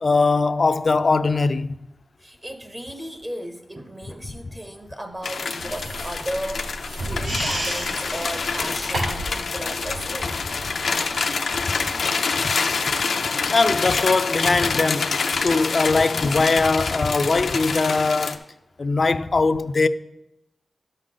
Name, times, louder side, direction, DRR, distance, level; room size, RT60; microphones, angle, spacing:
voice 1, 0.0-1.7 11.8-11.9 13.5-18.4 18.8-19.9, left 3 dB, 45° left, 0.4 m, -21 dB
voice 2, 2.2-10.4, equal, 20° right, 0.6 m, -35 dB
sound 1, 5.1-15.9, right 2 dB, 70° right, 0.7 m, -42 dB
sound 2, 5.2-18.3, left 4 dB, 90° left, 0.6 m, -26 dB
sound 3, 5.6-9.4, right 1 dB, 90° right, 3.1 m, -31 dB
11.5 x 6.5 x 3.8 m
wide cardioid pair, 125°, 0 cm